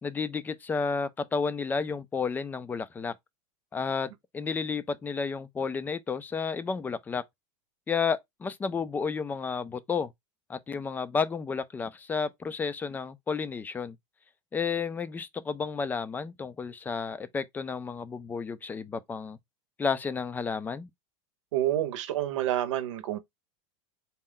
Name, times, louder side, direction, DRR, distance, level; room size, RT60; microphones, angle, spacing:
voice 1, 0.0-3.1 3.7-7.2 7.9-10.1 10.5-14.0 14.5-19.4 19.8-20.9, left 5 dB, 10° left, 0.3 m, -31 dB
voice 2, 21.5-23.2, right 13 dB, 90° right, 0.8 m, -28 dB
4.2 x 2.2 x 3.7 m
supercardioid pair, 150°, 15 cm